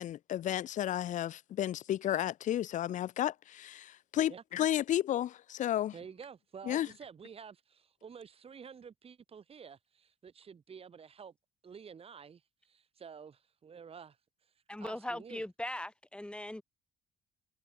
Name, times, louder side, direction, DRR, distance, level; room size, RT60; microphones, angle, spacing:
voice 1, 0.0-5.9 6.7-6.9, left 12 dB, 50° left, 0.5 m, -32 dB
voice 2, 5.9-11.3 11.6-14.2 14.4-14.5 14.8-15.4, right 6 dB, 35° right, 2.5 m, -50 dB
voice 3, 14.7-16.6, left 1 dB, 5° left, 1.4 m, -39 dB
cardioid pair, 110°, 17 cm